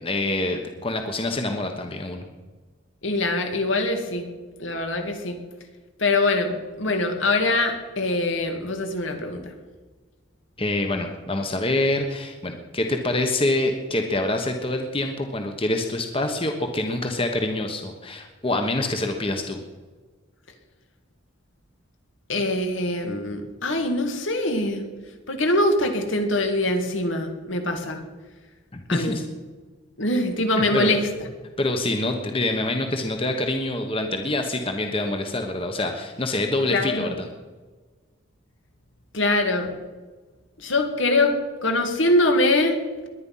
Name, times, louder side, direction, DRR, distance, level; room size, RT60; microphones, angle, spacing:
voice 1, 0.0-2.2 10.6-19.6 28.7-29.2 30.5-31.0 31.6-37.3, left 2 dB, 30° left, 5 dB, 1.2 m, -26 dB
voice 2, 3.0-4.3 4.6-5.4 6.0-9.5 22.3-24.9 25.3-28.0 28.9-29.2 30.0-31.0 36.7-37.1 39.1-39.7 40.6-41.3 41.6-42.8, left 2 dB, 75° left, 4 dB, 2.4 m, -23 dB
21.0 x 9.9 x 5.7 m, 1.3 s
head